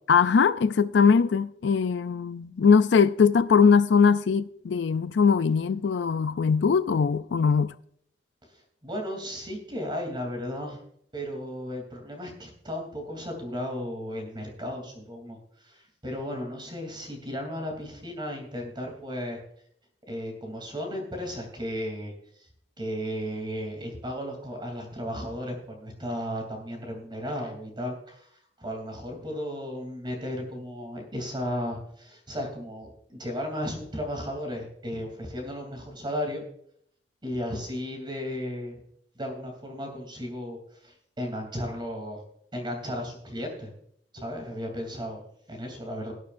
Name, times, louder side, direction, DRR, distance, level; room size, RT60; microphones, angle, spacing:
voice 1, 0.1-7.7, left 5 dB, 85° left, 0.4 m, -21 dB
voice 2, 8.5-10.8 11.1-19.4 20.1-22.5 22.8-36.4 37.2-38.8 39.1-42.2 42.5-43.7 44.1-46.1, equal, 25° right, 3.0 m, -35 dB
18.5 x 9.5 x 2.6 m
head